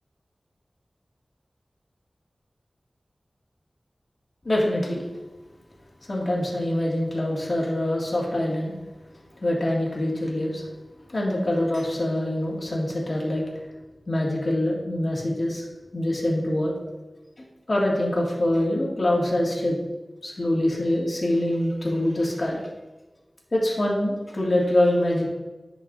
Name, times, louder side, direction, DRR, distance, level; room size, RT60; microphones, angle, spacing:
voice 1, 4.4-5.0 6.1-8.7 9.4-10.6 11.1-13.4 14.1-15.6 15.9-16.7 17.4-19.8 20.2-22.6 23.5-25.3, left 1 dB, 55° left, -4 dB, 2.1 m, -24 dB
11.0 x 5.2 x 2.6 m, 1.1 s
wide cardioid pair, 55°, 0 cm